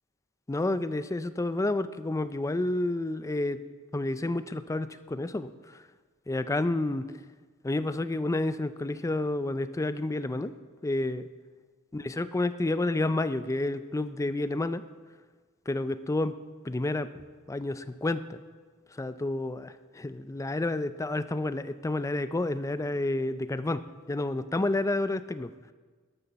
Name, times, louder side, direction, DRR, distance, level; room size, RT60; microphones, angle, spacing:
voice 1, 0.5-3.6 3.9-5.5 6.3-7.1 7.6-10.5 10.8-11.3 11.9-14.8 15.7-16.3 16.6-18.4 19.0-23.8 24.1-25.5, left 2 dB, 15° left, 13 dB, 0.4 m, -30 dB
12.5 x 12.5 x 4.2 m, 1.4 s
head